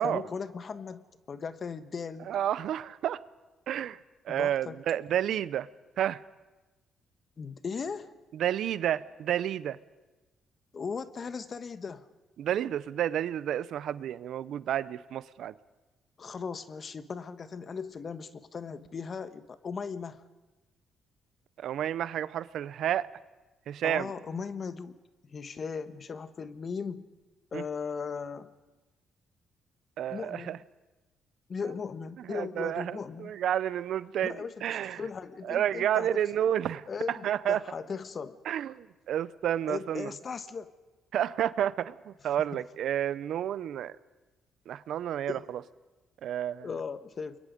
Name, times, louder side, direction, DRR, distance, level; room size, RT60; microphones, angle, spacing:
voice 1, 0.0-2.3 4.3-4.8 7.4-8.1 10.7-12.0 16.2-20.2 23.8-25.0 25.2-27.0 27.5-28.5 30.1-30.6 31.5-33.3 34.2-36.2 36.9-38.4 39.7-40.7 42.5-42.6 45.3-45.4 46.6-47.4, left 5 dB, 45° left, 1.3 m, -37 dB
voice 2, 2.3-3.2 3.7-4.0 4.3-5.7 6.0-6.2 8.3-9.8 12.4-15.5 21.6-23.1 23.7-24.1 27.5-27.6 30.0-30.6 32.3-35.0 35.4-37.6 38.5-40.1 41.1-43.9 44.7-45.4 46.2-46.7, right 10 dB, 75° right, 0.6 m, -30 dB
29.0 x 22.5 x 5.2 m
cardioid pair, 90°, 0 cm